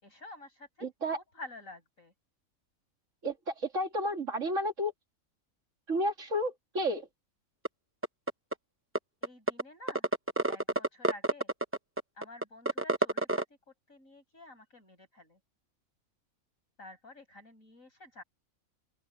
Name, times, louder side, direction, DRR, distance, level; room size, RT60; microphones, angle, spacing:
voice 1, 0.0-2.1 9.2-10.1 10.5-11.5 12.2-15.4 16.8-18.2, left 2 dB, 65° left, 7.4 m, -50 dB
voice 2, 0.8-1.2 3.2-4.9 5.9-7.1, equal, 60° right, 2.5 m, -31 dB
sound 1, 7.7-7.8 8.0-8.5 9.0-9.1 9.2-9.6 9.9-13.4, right 2 dB, 10° right, 0.7 m, -28 dB
open air
omnidirectional pair, 1.5 m